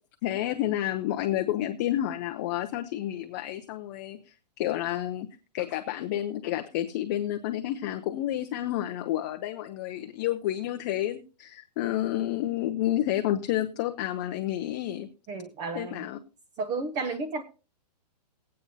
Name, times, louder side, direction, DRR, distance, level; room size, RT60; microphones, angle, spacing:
voice 1, 0.2-4.2 4.6-5.3 5.5-15.1 15.7-16.2 17.1-17.2, left 13 dB, 25° left, 6 dB, 0.5 m, -30 dB
voice 2, 15.3-16.1 16.6-17.4, right 4 dB, 20° right, 8 dB, 0.5 m, -32 dB
20.0 x 8.6 x 2.7 m, 0.33 s
hypercardioid pair, 155°, 21 cm